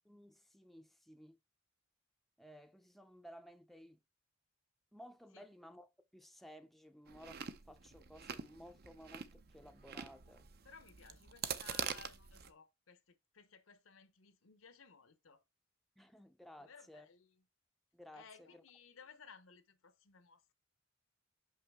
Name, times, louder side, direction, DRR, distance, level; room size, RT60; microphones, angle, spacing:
voice 1, 0.0-1.4 2.4-4.0 4.9-7.4 7.7-10.5 16.0-17.1 17.9-18.6, equal, ahead, 0.5 m, -57 dB
Chewing mastication, 7.1-12.5, right 7 dB, 50° right, 0.6 m, -45 dB
voice 2, 10.6-15.4 16.6-17.3 18.1-20.4, left 5 dB, 90° left, 0.8 m, -59 dB
6.1 x 5.7 x 3.5 m
head